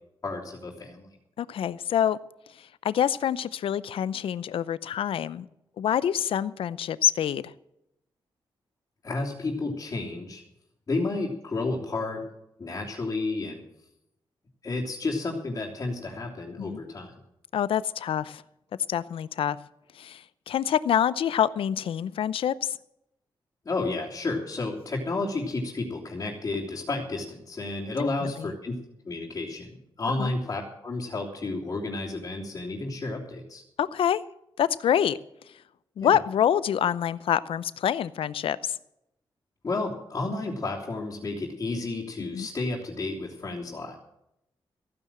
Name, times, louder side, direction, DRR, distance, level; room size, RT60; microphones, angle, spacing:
voice 1, 0.2-1.1 9.0-10.4 10.9-12.3 12.6-13.6 14.6-17.1 23.6-28.7 29.0-33.6 36.0-36.2 39.6-44.0, left 3 dB, 35° left, -5 dB, 3.2 m, -31 dB
voice 2, 1.4-2.2 2.8-5.5 5.8-7.4 16.6-16.8 17.5-18.4 18.9-19.6 20.0-22.8 28.0-28.1 28.4-28.5 30.2-30.3 33.8-34.2 34.6-35.2 36.0-38.7 42.3-42.5, left 9 dB, 90° left, 17 dB, 0.6 m, -26 dB
15.0 x 9.6 x 7.6 m, 0.83 s
wide cardioid pair, 120°, 9 cm